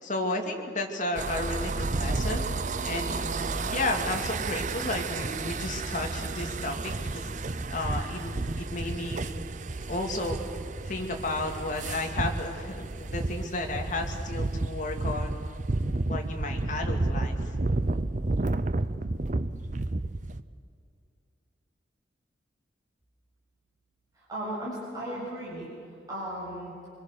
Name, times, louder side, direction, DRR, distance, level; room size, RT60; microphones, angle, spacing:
voice 1, 0.0-2.4 2.8-7.3 7.7-9.4 9.9-10.4 10.9-15.4 16.1-17.4, left 2 dB, 40° left, 2 dB, 2.5 m, -33 dB
sound 1, 1.1-20.4, right 2 dB, 40° right, 0.7 m, -31 dB
voice 2, 24.1-25.7 26.1-26.7, right 1 dB, 20° right, -8 dB, 7.3 m, -36 dB
26.0 x 22.0 x 6.7 m, 2.4 s
head